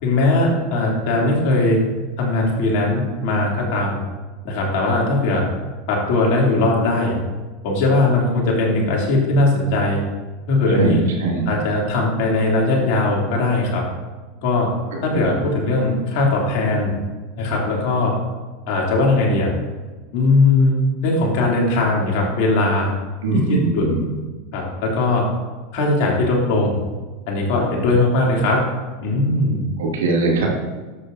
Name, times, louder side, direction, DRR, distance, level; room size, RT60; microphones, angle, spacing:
voice 1, 0.0-1.8 2.2-4.0 4.4-5.4 5.9-7.2 7.6-10.0 10.5-11.0 11.5-13.8 14.4-14.7 15.0-16.9 17.4-18.1 18.7-19.5 20.1-22.9 23.3-24.0 24.5-25.2 25.7-26.8 27.3-28.6 29.0-29.6, left 2 dB, 60° left, -2 dB, 3.0 m, -19 dB
voice 2, 10.7-11.5 23.2-24.1 29.8-30.5, right 3 dB, 75° right, -1 dB, 2.5 m, -21 dB
12.5 x 8.2 x 2.7 m, 1.3 s
hypercardioid pair, 90°, 0 cm